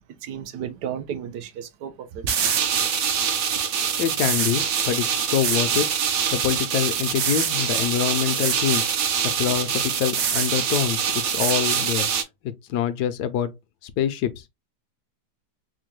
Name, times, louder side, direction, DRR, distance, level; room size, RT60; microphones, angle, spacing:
voice 1, 0.2-2.3, right 9 dB, 80° right, 1.3 m, -33 dB
sound 1, 2.3-12.2, right 7 dB, 65° right, 1.0 m, -24 dB
voice 2, 4.0-5.9 6.3-8.9 9.2-12.1 12.7-13.5 13.8-14.4, left 9 dB, 75° left, 1.1 m, -25 dB
4.3 x 2.2 x 3.1 m
omnidirectional pair, 1.8 m